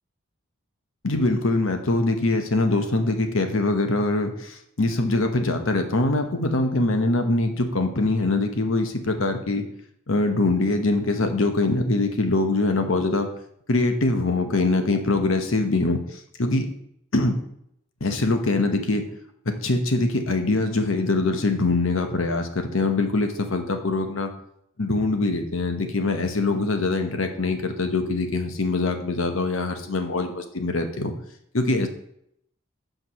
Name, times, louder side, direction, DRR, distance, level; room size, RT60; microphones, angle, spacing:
voice 1, 1.0-9.6 10.1-13.3 13.7-16.7 17.1-17.4 18.0-19.0 19.5-24.3 24.8-31.1 31.5-31.9, left 2 dB, 70° left, 6 dB, 1.1 m, -23 dB
5.9 x 5.2 x 6.3 m, 0.73 s
head